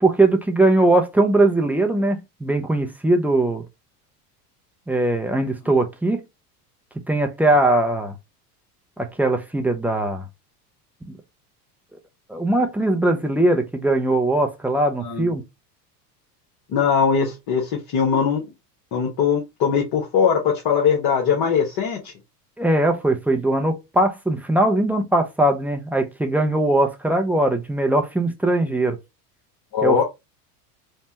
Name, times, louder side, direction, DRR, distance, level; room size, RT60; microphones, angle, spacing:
voice 1, 0.0-3.6 4.9-6.2 7.1-8.1 9.0-10.2 12.3-15.4 22.6-29.0 29.8-30.0, right 2 dB, 5° right, 0.5 m, -20 dB
voice 2, 15.0-15.3 16.7-18.4 18.9-22.1 29.7-30.0, left 6 dB, 50° left, 1.2 m, -21 dB
3.3 x 2.1 x 2.8 m
hypercardioid pair, 90°, 47 cm